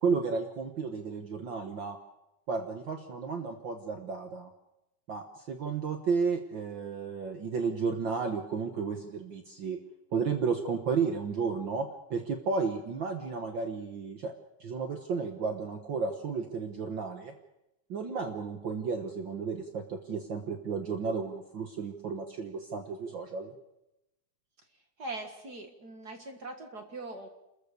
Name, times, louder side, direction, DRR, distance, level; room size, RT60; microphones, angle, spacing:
voice 1, 0.0-2.0 2.5-4.5 5.1-9.8 10.1-14.3 14.6-17.3 17.9-23.5, right 5 dB, 80° right, 5 dB, 1.0 m, -33 dB
voice 2, 25.0-27.3, right 2 dB, 40° right, 5 dB, 1.5 m, -41 dB
29.0 x 14.0 x 6.8 m, 0.91 s
omnidirectional pair, 4.1 m